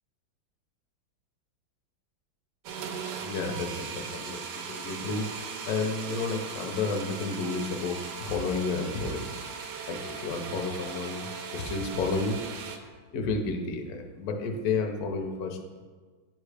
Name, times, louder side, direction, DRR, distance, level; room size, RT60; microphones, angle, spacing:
sound 1, 2.6-12.8, right 6 dB, 70° right, 1.1 m, -38 dB
voice 1, 3.2-5.4 5.7-9.3 9.9-12.4 13.1-15.8, left 4 dB, 65° left, 3 dB, 1.0 m, -31 dB
10.0 x 3.6 x 3.3 m, 1.4 s
omnidirectional pair, 2.3 m